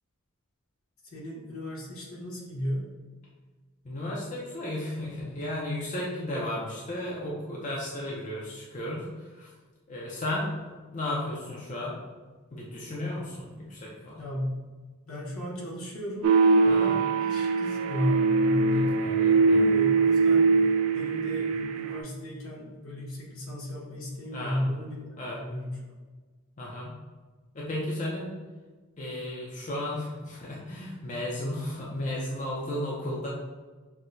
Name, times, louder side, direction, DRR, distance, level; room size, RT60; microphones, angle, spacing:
voice 1, 1.1-2.8 14.2-14.6 15.1-16.3 16.6-19.0 19.5-20.7 20.9-25.8, left 1 dB, 70° left, -4 dB, 1.0 m, -34 dB
voice 2, 3.8-9.5 9.9-12.0 12.5-14.2 16.7-17.0 18.7-19.8 21.2-21.4 24.3-24.6 25.2-25.4 26.6-27.0 27.5-28.3 29.0-33.3, left 1 dB, 35° left, -4 dB, 0.5 m, -34 dB
sound 1, 16.2-22.0, right 4 dB, 80° right, 0.4 m, -22 dB
5.9 x 2.1 x 2.6 m, 1.3 s
head